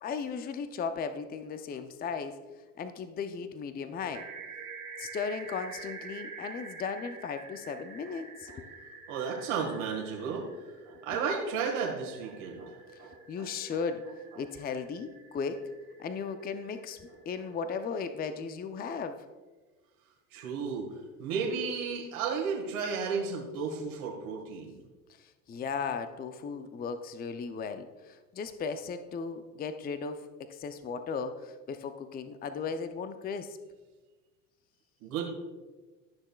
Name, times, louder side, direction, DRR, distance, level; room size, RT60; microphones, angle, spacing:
voice 1, 0.0-2.4 2.8-4.3 5.0-8.7 12.9-13.0 13.3-14.0 14.4-15.6 16.0-17.0 17.3-19.2 25.2-30.2 30.5-33.6, left 5 dB, 20° left, 10 dB, 0.5 m, -36 dB
sound 1, 4.1-18.0, right 4 dB, 50° right, 1.7 m, -48 dB
voice 2, 9.1-10.5 10.9-12.7 13.0-13.1 13.4-13.5 20.3-20.9 21.2-24.8 35.0-35.3, right 5 dB, 70° right, -1 dB, 1.8 m, -33 dB
13.0 x 6.5 x 2.3 m, 1.2 s
hypercardioid pair, 75°, 42 cm